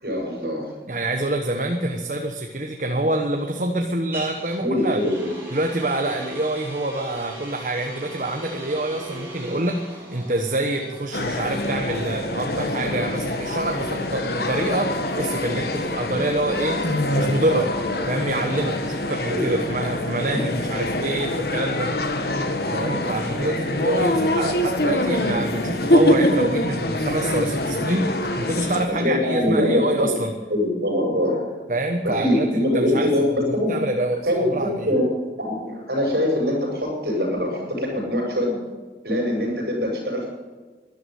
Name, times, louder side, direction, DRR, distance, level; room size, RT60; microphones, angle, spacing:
voice 1, 0.0-0.8 4.6-5.3 19.2-19.7 28.9-29.9 30.5-31.4 32.0-33.8 34.2-35.1 35.4-38.6 39.0-40.3, left 1 dB, 65° right, 0 dB, 7.0 m, -23 dB
voice 2, 0.9-5.0 5.5-17.7 18.1-21.9 22.7-30.3 31.7-33.1 33.7-34.9, right 1 dB, 45° right, 3 dB, 1.2 m, -26 dB
sound 1, 1.7-15.6, right 1 dB, 15° right, 5.7 m, -40 dB
sound 2, 11.1-28.9, left 1 dB, 65° left, 1.7 m, -24 dB
13.0 x 11.5 x 9.4 m, 1.3 s
head